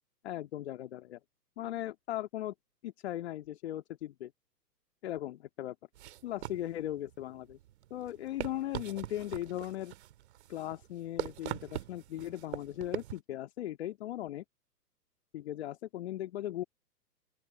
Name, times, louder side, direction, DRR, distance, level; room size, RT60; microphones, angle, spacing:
voice 1, 0.2-1.2 1.6-2.5 2.8-4.3 5.0-5.8 6.2-7.6 7.9-9.9 10.5-14.4 15.3-16.6, left 13 dB, 40° left, 2.2 m, -38 dB
sound 1, 5.9-13.2, right 13 dB, 40° right, 2.7 m, -42 dB
open air
figure-of-eight pair, 125°, 49 cm